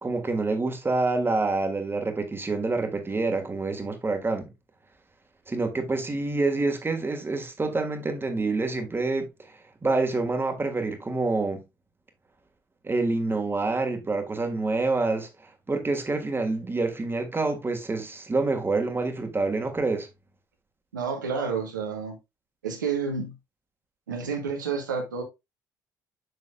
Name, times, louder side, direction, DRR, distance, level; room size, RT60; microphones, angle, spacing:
voice 1, 0.0-4.4 5.5-11.6 12.8-15.3 15.7-20.1, right 3 dB, 20° right, 1.8 m, -27 dB
voice 2, 20.9-22.2 22.6-23.3 24.1-25.2, right 5 dB, 85° right, 1.2 m, -30 dB
6.8 x 6.1 x 2.4 m
hypercardioid pair, 50°, 10 cm